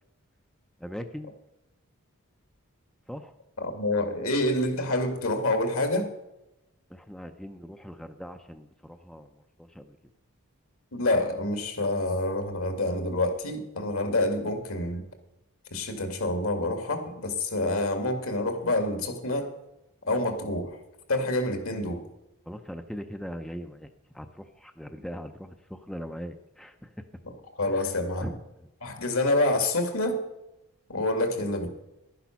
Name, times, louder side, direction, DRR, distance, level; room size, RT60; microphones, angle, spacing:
voice 1, 0.8-1.3 3.1-3.3 6.9-9.3 9.6-10.0 22.5-23.9 24.1-26.9 27.7-27.9 28.2-28.4, equal, 5° left, 7 dB, 0.5 m, -40 dB
voice 2, 3.6-6.1 10.9-15.0 15.7-19.5 20.1-20.8 21.1-22.0 27.2-28.4 28.8-30.2 30.9-31.7, left 2 dB, 70° left, 7 dB, 2.1 m, -27 dB
11.5 x 10.0 x 5.8 m, 0.92 s
head